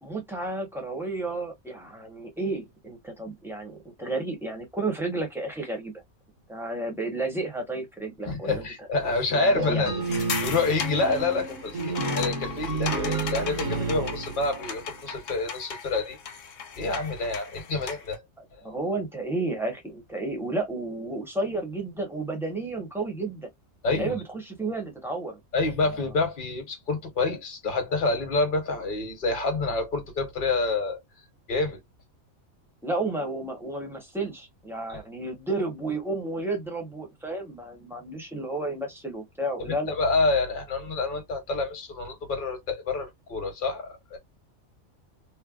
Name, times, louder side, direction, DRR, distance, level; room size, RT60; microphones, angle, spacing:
voice 1, 0.0-5.9 6.5-8.6 9.3-10.0 18.4-23.5 23.9-25.4 32.8-39.9, right 2 dB, ahead, 0.8 m, -32 dB
voice 2, 8.3-16.2 16.8-18.2 23.8-24.1 25.5-31.0 31.5-31.8 34.9-35.0 39.6-44.2, left 3 dB, 40° left, 1.1 m, -27 dB
sound 1, 9.6-15.0, right 3 dB, 70° right, 1.6 m, -31 dB
sound 2, 10.0-18.2, left 6 dB, 70° left, 1.0 m, -37 dB
3.2 x 2.2 x 2.3 m
omnidirectional pair, 1.4 m